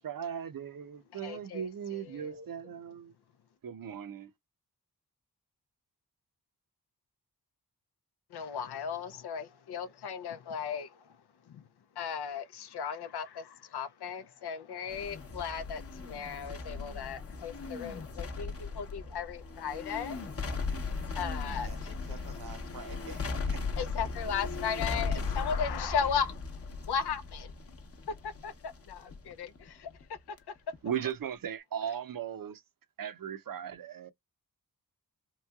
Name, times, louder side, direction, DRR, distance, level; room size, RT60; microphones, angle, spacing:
voice 1, 0.0-3.1 3.6-4.3 30.8-32.6 33.0-34.1, right 8 dB, 60° right, 0.6 m, -37 dB
voice 2, 1.2-1.6 2.1-2.5 8.3-11.0 11.5-11.6 12.0-20.3 21.1-21.7 23.8-26.4 26.9-27.5 28.1-29.9 30.3-30.4, left 7 dB, 90° left, 0.5 m, -36 dB
sound 1, 14.9-30.4 30.7-30.8, left 4 dB, 40° left, 0.7 m, -37 dB
voice 3, 21.5-23.6, right 4 dB, 80° right, 1.2 m, -48 dB
3.1 x 2.7 x 2.2 m
wide cardioid pair, 65°, 38 cm